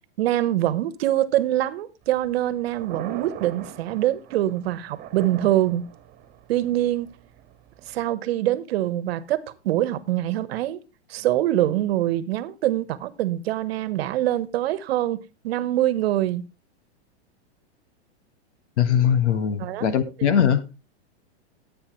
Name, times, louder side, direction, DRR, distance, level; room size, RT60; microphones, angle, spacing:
voice 1, 0.2-5.8 6.5-7.1 7.9-10.8 11.1-16.4 19.6-19.8, right 13 dB, 65° right, 1.2 m, -24 dB
Thunder, 2.0-8.0, right 10 dB, 30° right, 1.7 m, -42 dB
voice 2, 18.8-20.7, left 8 dB, 80° left, 1.7 m, -21 dB
14.0 x 8.8 x 3.1 m
hypercardioid pair, 135°, 34 cm